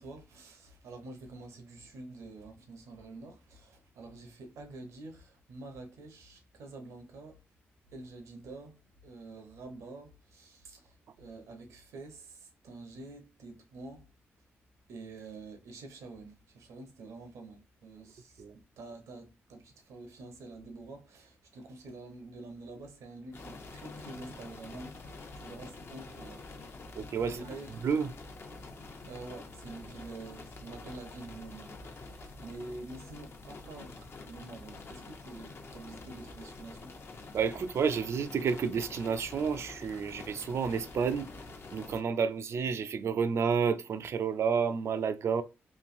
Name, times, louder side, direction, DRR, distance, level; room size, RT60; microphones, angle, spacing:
voice 1, 0.0-7.4 7.9-14.1 14.9-18.4 18.8-26.4 27.2-27.7 29.1-36.9, right 2 dB, 80° right, 0.8 m, -47 dB
sound 1, 23.3-42.0, left 3 dB, 55° left, 0.6 m, -47 dB
voice 2, 27.0-27.4 27.7-28.1 37.3-41.3 41.7-45.4, right 6 dB, 65° right, 0.4 m, -30 dB
3.1 x 2.5 x 2.5 m
supercardioid pair, 55°, 5 cm